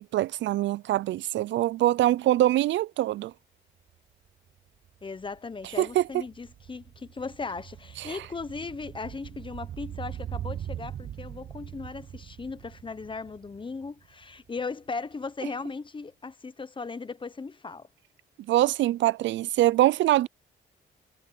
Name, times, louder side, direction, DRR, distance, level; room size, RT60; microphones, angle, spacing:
voice 1, 0.0-3.3 5.8-6.0 8.0-8.2 18.5-20.3, right 14 dB, 70° right, 0.4 m, -24 dB
sound 1, 3.9-4.0 4.3-14.6 14.9-15.0, right 10 dB, 50° right, 0.8 m, -42 dB
voice 2, 5.0-17.9, left 4 dB, 25° left, 1.1 m, -37 dB
cardioid pair, 90°, 20 cm